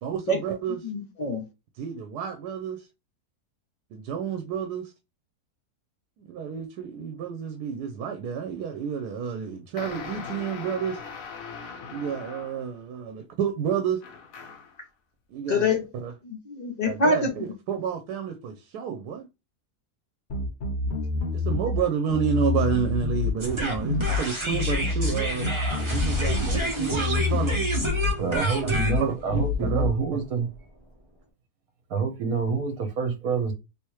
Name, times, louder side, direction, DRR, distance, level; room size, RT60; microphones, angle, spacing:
voice 1, 0.0-0.9 1.7-2.9 3.9-4.9 6.2-11.0 11.9-14.0 15.3-16.1 16.8-19.3 21.3-25.5 25.8-27.6 28.2-28.7 29.0-30.2, right 7 dB, 90° right, 1.2 m, -30 dB
voice 2, 0.8-1.4 15.5-15.8 16.3-17.3, left 2 dB, 80° left, 0.3 m, -25 dB
sound 1, 9.8-12.8 14.0-14.8, left 5 dB, 65° left, 1.1 m, -40 dB
sound 2, 20.3-21.8 22.1-23.3 23.9-24.2 24.5-26.6 26.9-28.1 28.7-29.0 29.3-29.9, left 4 dB, 40° left, 0.8 m, -27 dB
sound 3, 23.4-30.5, right 1 dB, 25° right, 0.8 m, -29 dB
voice 3, 28.2-30.5 31.9-33.5, right 5 dB, 65° right, 1.4 m, -27 dB
3.4 x 2.9 x 3.0 m
omnidirectional pair, 1.6 m